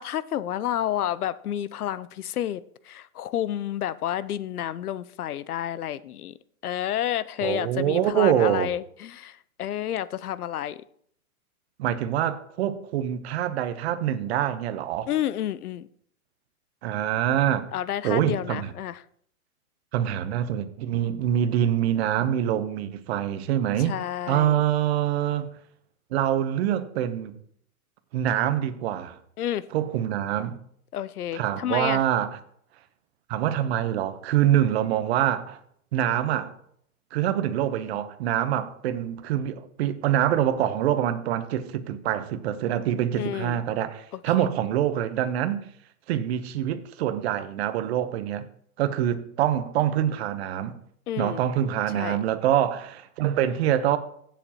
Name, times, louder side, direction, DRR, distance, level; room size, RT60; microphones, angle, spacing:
voice 1, 0.0-6.3 6.6-10.8 15.1-15.9 17.7-19.0 23.9-24.6 29.4-29.7 30.9-32.0 43.2-43.6 44.1-44.5 51.1-51.4 51.9-52.2, left 11 dB, 90° left, 0.7 m, -30 dB
voice 2, 7.4-8.7 11.8-15.1 16.8-17.7 18.0-18.7 19.9-23.9 24.3-25.5 26.1-27.3 28.1-29.2 29.7-30.6 31.3-32.4 33.3-35.6 35.9-36.5 37.1-45.6 46.1-48.4 48.8-50.8 51.2-54.0, right 11 dB, 45° right, 1.0 m, -25 dB
16.0 x 7.3 x 2.9 m
hypercardioid pair, 145°, 44 cm